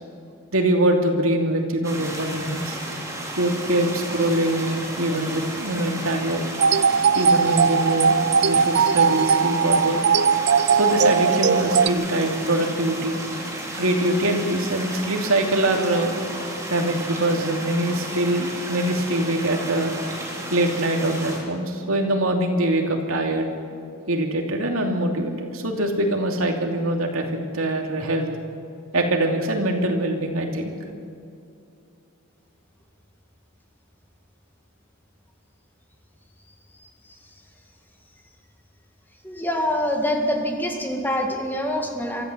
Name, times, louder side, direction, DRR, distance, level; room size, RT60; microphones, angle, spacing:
voice 1, 0.5-2.8 3.4-6.5 7.1-8.2 8.4-10.0 10.7-13.2 13.7-16.2 16.7-19.9 20.5-23.5 24.1-28.3 28.9-30.7, right 1 dB, 75° right, 2 dB, 2.8 m, -23 dB
sound 1, 1.8-21.4, right 1 dB, 15° right, 3.6 m, -33 dB
sound 2, 6.6-11.9, right 6 dB, 50° right, 0.5 m, -19 dB
voice 2, 36.8-37.1 39.2-42.2, left 1 dB, 10° left, 2 dB, 2.1 m, -25 dB
23.5 x 14.0 x 7.9 m, 2.5 s
head